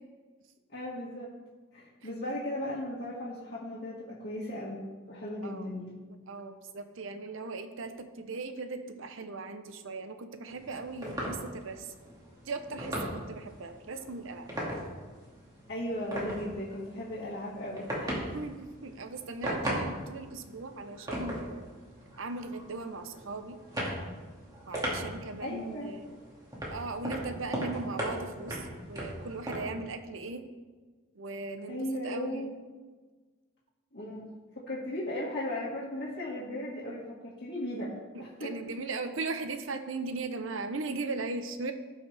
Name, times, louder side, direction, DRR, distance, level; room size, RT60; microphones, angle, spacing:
voice 1, 0.7-1.3 1.7-4.8 5.1-5.9 15.7-18.2 25.4-25.9 31.7-32.5 33.9-34.3 34.7-37.9 38.2-38.5, left 1 dB, 50° left, -9 dB, 1.8 m, -36 dB
voice 2, 6.3-11.9 12.5-14.5 18.3-21.7 22.2-23.6 24.7-26.1 26.7-30.4 31.2-32.5 38.1-41.7, right 3 dB, 65° right, 8 dB, 0.7 m, -38 dB
sound 1, 10.5-29.6, equal, 15° right, 2.1 m, -38 dB
16.0 x 5.7 x 3.4 m, 1.4 s
head